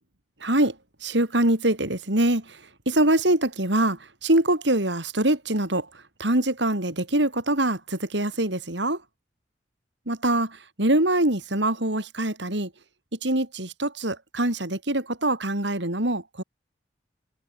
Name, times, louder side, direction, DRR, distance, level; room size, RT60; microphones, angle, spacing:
voice 1, 0.4-0.8 1.0-5.9 6.2-9.0 10.1-12.7 13.2-16.4, right 1 dB, 80° right, 5.2 m, -24 dB
head